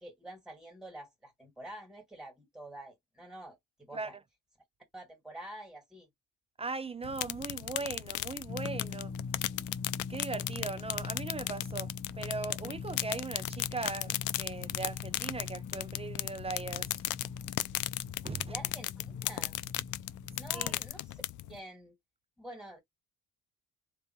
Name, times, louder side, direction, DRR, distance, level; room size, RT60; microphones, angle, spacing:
voice 1, 0.0-3.6 3.9-4.2 4.9-6.1 18.5-19.6 20.3-21.2 21.5-22.0 22.4-22.8, right 1 dB, ahead, 2.0 m, -47 dB
voice 2, 6.6-9.1 10.1-16.9 18.2-18.5 20.5-20.8, right 3 dB, 20° right, 0.4 m, -39 dB
sound 1, 7.0-21.6, left 16 dB, 80° left, 0.5 m, -37 dB
sound 2, 8.5-20.9, left 5 dB, 30° left, 0.8 m, -43 dB
3.5 x 2.8 x 3.1 m
cardioid pair, 90°, 30 cm